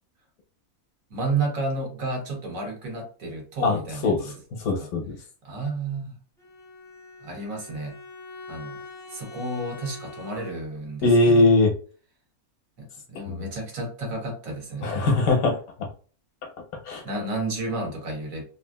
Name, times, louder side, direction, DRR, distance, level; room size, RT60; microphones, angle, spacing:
voice 1, 1.1-4.3 4.8-4.9 5.4-6.1 7.2-8.0 8.5-8.8 9.1-11.5 13.1-15.2 17.0-18.4, right 3 dB, 65° right, 1 dB, 1.4 m, -31 dB
voice 2, 3.6-5.2 11.0-11.7 13.1-13.4 14.8-15.9 16.8-17.0, left 2 dB, 70° left, 2 dB, 1.2 m, -21 dB
Bowed string instrument, 6.4-10.9, left 3 dB, 5° left, 0.4 m, -43 dB
3.2 x 2.4 x 2.2 m, 0.39 s
omnidirectional pair, 1.6 m